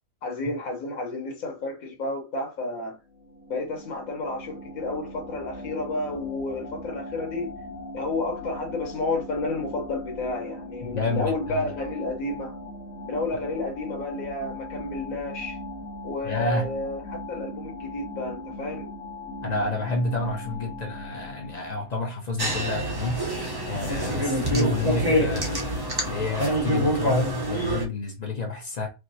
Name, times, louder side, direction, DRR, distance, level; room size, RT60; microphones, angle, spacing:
voice 1, 0.2-3.0 3.5-7.5 7.9-12.6 13.1-15.6 16.0-17.0 17.3-18.9, left 2 dB, 85° left, 1.4 m, -31 dB
sound 1, 3.1-22.0, left 1 dB, 65° left, 1.0 m, -39 dB
voice 2, 10.8-11.7 16.2-16.7 19.4-23.2 23.7-25.6 26.1-28.9, left 2 dB, 45° left, 0.6 m, -29 dB
sound 2, 22.4-27.8, right 1 dB, 25° right, 0.5 m, -26 dB
4.8 x 2.0 x 2.6 m
omnidirectional pair, 1.4 m